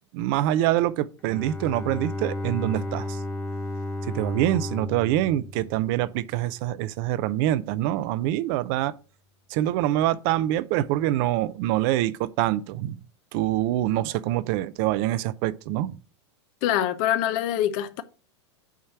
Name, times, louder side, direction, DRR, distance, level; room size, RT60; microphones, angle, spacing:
voice 1, 0.1-3.2 4.1-8.9 9.5-13.0 13.3-16.0, right 14 dB, 50° right, 0.6 m, -25 dB
Bowed string instrument, 1.2-6.5, left 1 dB, 15° left, 1.4 m, -33 dB
voice 2, 16.6-18.0, left 11 dB, 50° left, 0.7 m, -24 dB
9.1 x 3.2 x 5.9 m
hypercardioid pair, 100°, 15 cm